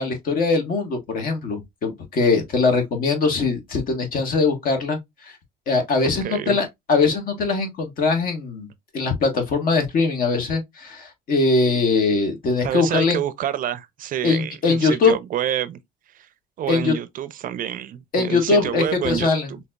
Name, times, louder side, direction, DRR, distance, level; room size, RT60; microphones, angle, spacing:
voice 1, 0.0-5.0 5.7-8.7 8.9-13.2 14.2-15.1 16.7-16.9 18.1-19.5, left 4 dB, 55° left, 1.3 m, -21 dB
voice 2, 6.2-6.6 12.6-15.8 16.1-16.3 16.6-19.6, right 10 dB, 55° right, 0.5 m, -28 dB
4.0 x 2.8 x 2.2 m
cardioid pair, 110°, 17 cm